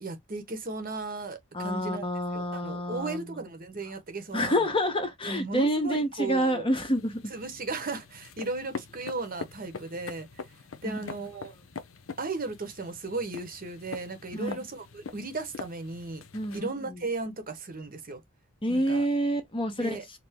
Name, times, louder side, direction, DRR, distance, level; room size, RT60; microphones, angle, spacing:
voice 1, 0.0-2.0 2.3-4.7 5.3-6.6 7.3-10.5 10.8-11.5 12.2-16.2 16.5-18.2 18.7-19.1 19.8-20.0, right 3 dB, 40° right, 0.9 m, -36 dB
voice 2, 1.5-3.4 4.3-7.3 10.8-11.0 14.3-14.6 16.3-16.7 18.6-20.0, equal, 25° left, 0.9 m, -28 dB
sound 1, 6.7-16.6, left 5 dB, 60° left, 0.7 m, -44 dB
4.6 x 2.1 x 3.5 m
head